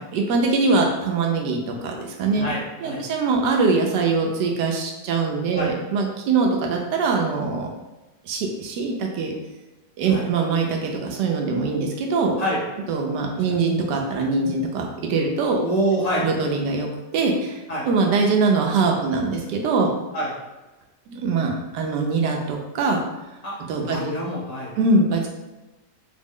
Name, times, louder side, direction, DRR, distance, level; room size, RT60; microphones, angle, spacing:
voice 1, 0.0-2.5 2.8-7.7 8.3-9.3 10.0-12.3 12.9-15.6 16.2-17.6 17.8-19.9 21.1-23.0 23.7-24.1 24.8-25.3, right 4 dB, 85° right, 1 dB, 1.2 m, -22 dB
voice 2, 2.4-3.0 5.5-5.7 10.1-10.2 12.4-12.6 13.3-13.4 15.6-16.3 17.7-17.8 20.1-20.3 23.4-24.7, right 1 dB, 45° left, -6 dB, 0.5 m, -26 dB
3.9 x 2.0 x 3.6 m, 1.1 s
omnidirectional pair, 1.8 m